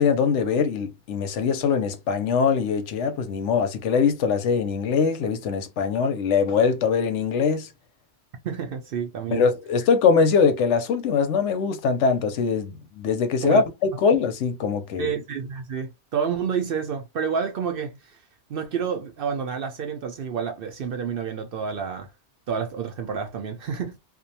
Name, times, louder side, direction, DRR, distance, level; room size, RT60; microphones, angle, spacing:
voice 1, 0.0-7.7 9.3-15.1, left 5 dB, 90° left, 0.9 m, -22 dB
voice 2, 8.4-9.4 13.4-13.6 15.0-18.2 18.5-22.1 22.5-24.0, right 6 dB, 60° right, 0.7 m, -29 dB
2.5 x 2.1 x 2.6 m
omnidirectional pair, 1.2 m